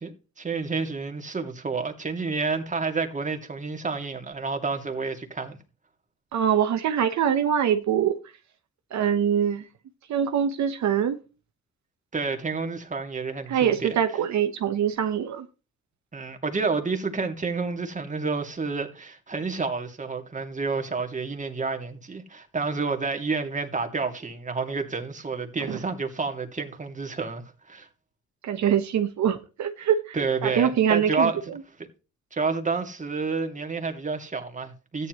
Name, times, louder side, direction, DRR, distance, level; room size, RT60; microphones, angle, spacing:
voice 1, 0.0-5.6 12.1-14.2 16.1-27.4 27.7-27.9 30.1-31.5 32.3-35.1, right 4 dB, 25° right, 2.4 m, -29 dB
voice 2, 6.3-8.2 8.9-9.6 10.1-11.2 13.5-15.5 25.7-25.8 28.4-30.2 30.4-31.3, right 9 dB, 65° right, 1.1 m, -23 dB
13.5 x 9.9 x 3.1 m
cardioid pair, 90°, 30 cm